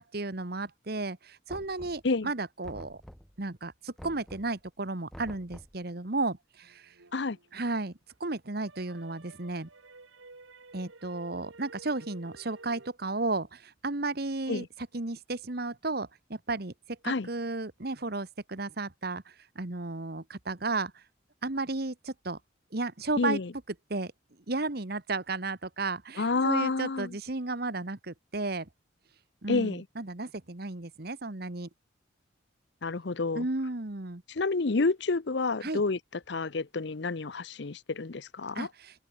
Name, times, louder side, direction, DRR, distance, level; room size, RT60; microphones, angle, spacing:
voice 1, 0.0-3.0 3.4-6.9 7.5-7.9 8.2-9.7 10.7-14.6 14.9-21.0 21.4-22.4 22.7-23.4 23.9-24.1 24.5-28.7 29.4-31.7 33.3-34.2 35.6-35.8 38.5-39.0, right 2 dB, 50° right, 1.4 m, -34 dB
Knock, 1.5-2.2 2.6-3.4 4.0-4.6 5.1-5.8, equal, ahead, 1.2 m, -48 dB
sound 1, 6.6-8.1 8.5-12.9, right 3 dB, 85° right, 2.7 m, -52 dB
voice 2, 23.2-23.5 26.2-27.2 29.5-29.8 32.8-33.5 34.3-36.0 36.3-38.7, left 3 dB, 60° left, 0.7 m, -29 dB
head